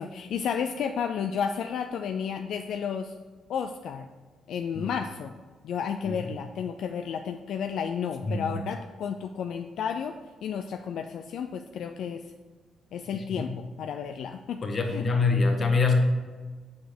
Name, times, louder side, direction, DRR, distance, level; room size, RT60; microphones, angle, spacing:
voice 1, 0.0-3.1 3.5-4.1 4.5-5.3 5.6-10.2 10.4-12.2 12.9-14.6 14.9-15.0, left 7 dB, 70° left, 6 dB, 0.4 m, -32 dB
voice 2, 8.3-8.6 13.1-13.5 14.6-16.0, left 4 dB, 40° left, 2 dB, 1.4 m, -25 dB
7.1 x 5.0 x 6.0 m, 1.4 s
cardioid pair, 90°, 0 cm